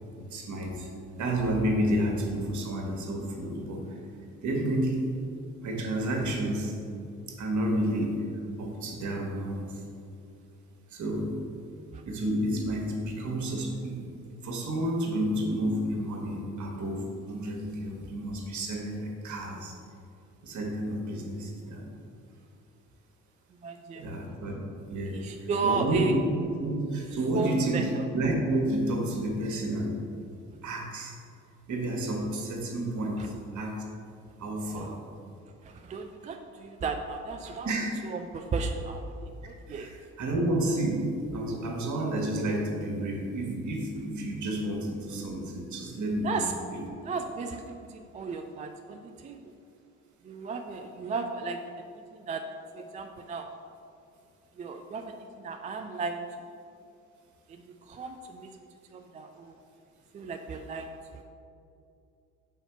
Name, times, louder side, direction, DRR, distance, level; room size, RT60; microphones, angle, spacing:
voice 1, 0.3-0.9 1.2-4.0 4.4-5.2 5.6-6.7 7.3-8.2 8.6-9.8 10.9-11.3 12.1-14.0 14.4-19.7 20.4-21.8 24.0-24.6 24.9-26.1 26.6-29.9 30.6-31.1 31.7-33.8 34.4-34.9 37.6-37.9 39.7-46.8, right 1 dB, 45° right, 1 dB, 1.4 m, -30 dB
voice 2, 23.6-24.1 25.1-26.1 27.3-28.1 33.2-33.3 34.7-35.0 35.6-37.7 38.0-39.9 46.2-46.5 47.0-49.4 50.2-52.4 52.7-53.5 54.6-56.3 57.5-58.5 58.9-59.6 60.1-61.2, right 4 dB, 20° right, 5 dB, 0.3 m, -35 dB
5.6 x 4.1 x 5.7 m, 2.5 s
figure-of-eight pair, 50°, 40 cm